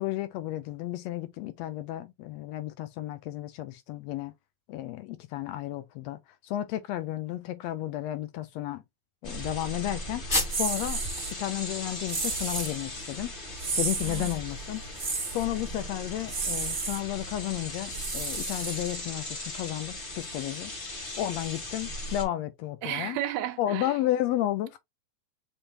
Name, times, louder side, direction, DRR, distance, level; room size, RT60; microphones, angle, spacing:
voice 1, 0.0-4.3 4.7-6.2 6.4-8.8 9.2-11.0 11.3-13.3 13.8-14.8 15.3-20.7 21.2-23.2 23.6-24.8, left 14 dB, 80° left, 1.7 m, -32 dB
sound 1, 9.2-22.2, left 1 dB, 45° left, 0.6 m, -38 dB
sound 2, 10.3-10.8 11.2-11.3 11.7-16.3, left 1 dB, 20° left, 1.5 m, -36 dB
sound 3, 10.5-11.3 12.1-12.8 13.6-14.4 15.0-15.5 16.3-17.0 17.9-19.1, right 4 dB, 40° right, 1.0 m, -32 dB
voice 2, 14.0-14.3 22.8-24.0, right 12 dB, 80° right, 1.9 m, -33 dB
5.6 x 3.3 x 2.8 m
omnidirectional pair, 3.3 m